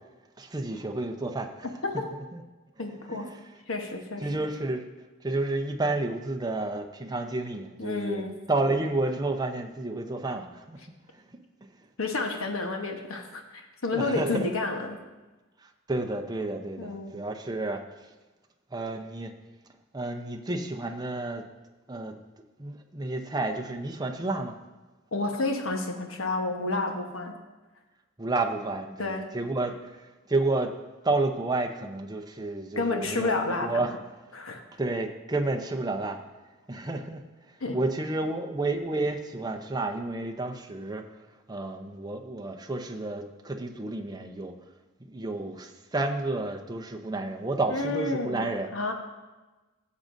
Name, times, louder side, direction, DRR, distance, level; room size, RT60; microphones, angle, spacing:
voice 1, 0.4-1.7 2.3-2.4 3.1-3.4 4.2-4.8 5.2-8.2 8.5-10.8 13.9-14.4 15.6-17.8 18.7-19.3 19.9-21.4 21.9-22.1 22.6-24.6 28.2-30.7 31.0-33.9 34.8-36.2 36.7-37.2 37.7-41.0 41.5-44.5 45.1-48.7, right 2 dB, 20° right, 4 dB, 0.7 m, -30 dB
voice 2, 2.8-3.3 3.7-4.3 7.8-8.3 12.0-15.0 16.8-17.1 25.1-27.3 29.0-29.3 32.8-33.9 34.3-34.6 37.6-37.8 47.7-48.9, left 3 dB, 75° left, 3 dB, 1.1 m, -30 dB
15.0 x 7.4 x 2.6 m, 1.2 s
head